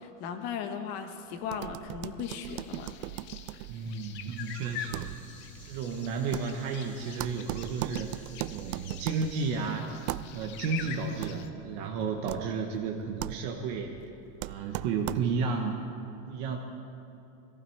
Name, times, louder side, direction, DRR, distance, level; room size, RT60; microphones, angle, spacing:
voice 1, 0.0-2.9, left 7 dB, 50° left, 6 dB, 1.3 m, -37 dB
sound 1, 1.4-15.6, right 17 dB, 85° right, 0.5 m, -40 dB
sound 2, 2.2-11.5, left 9 dB, 30° left, 0.6 m, -45 dB
voice 2, 3.7-5.1 5.7-9.9 10.3-14.0 14.4-15.8 16.3-16.6, right 5 dB, 45° right, 2 dB, 1.1 m, -32 dB
sound 3, 4.3-9.5, equal, 5° left, 2.5 m, -55 dB
21.0 x 15.0 x 4.6 m, 2.9 s
supercardioid pair, 170°, 40 cm